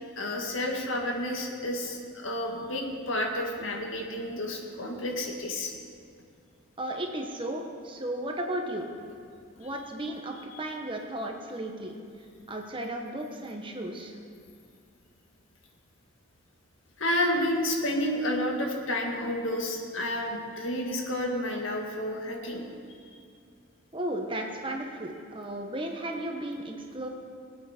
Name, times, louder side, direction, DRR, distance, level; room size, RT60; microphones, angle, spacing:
voice 1, 0.2-5.7 17.0-22.7, left 1 dB, 75° left, 1 dB, 1.9 m, -30 dB
voice 2, 6.8-8.9 9.6-11.9 12.5-14.1 23.9-27.1, right 1 dB, 25° right, 2 dB, 1.1 m, -34 dB
21.0 x 8.6 x 4.4 m, 2.3 s
head